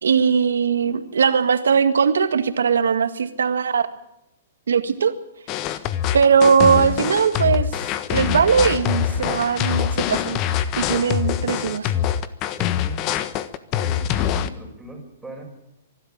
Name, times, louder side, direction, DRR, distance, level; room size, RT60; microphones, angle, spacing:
voice 1, 0.0-3.8 4.7-5.1 6.1-7.7 8.1-10.4 10.8-11.9, right 6 dB, 85° right, 10 dB, 1.9 m, -19 dB
sound 1, 5.5-14.5, left 10 dB, 35° left, 1.3 m, -24 dB
voice 2, 12.6-13.1 13.8-15.4, right 1 dB, 5° right, 1 dB, 6.2 m, -38 dB
24.0 x 12.5 x 8.8 m, 0.84 s
hypercardioid pair, 130°, 0 cm